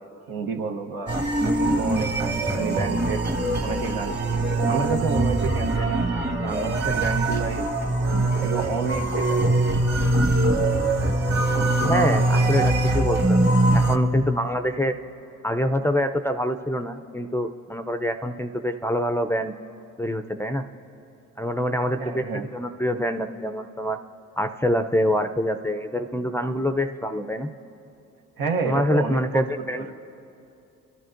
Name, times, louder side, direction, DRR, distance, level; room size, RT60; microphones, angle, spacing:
voice 1, 0.3-2.3 2.5-3.2 3.6-6.0 6.4-7.7 8.1-9.4 22.0-22.5 28.4-29.9, right 5 dB, 75° right, 3 dB, 0.9 m, -30 dB
sound 1, 1.1-14.0, right 2 dB, 30° right, 1.3 m, -22 dB
voice 2, 11.8-14.9 15.4-19.5 20.0-20.7 21.4-22.2 22.5-24.0 24.4-27.5 28.7-29.9, equal, 5° left, 5 dB, 0.5 m, -25 dB
25.0 x 11.0 x 2.6 m, 2.7 s
supercardioid pair, 50°, 36 cm